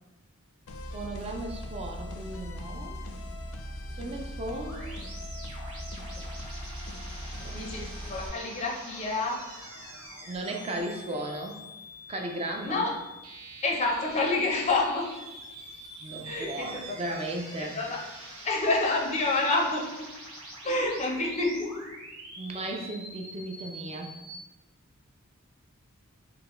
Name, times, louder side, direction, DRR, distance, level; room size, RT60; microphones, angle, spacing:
sound 1, 0.7-8.3, equal, 85° left, 0.5 m, -39 dB
voice 1, 0.9-3.0 3.9-5.0 7.1-7.8 10.3-11.6 12.1-12.8 16.0-17.8 22.4-24.2, right 1 dB, 30° right, 2 dB, 0.4 m, -36 dB
sound 2, 4.7-24.4, right 1 dB, 80° right, 1.4 m, -45 dB
voice 2, 7.5-9.4 12.6-12.9 13.6-15.1 16.2-17.0 17.6-18.0 18.4-20.0 20.6-21.8, left 2 dB, 30° left, -1 dB, 0.5 m, -28 dB
3.5 x 2.9 x 3.0 m, 1.0 s
head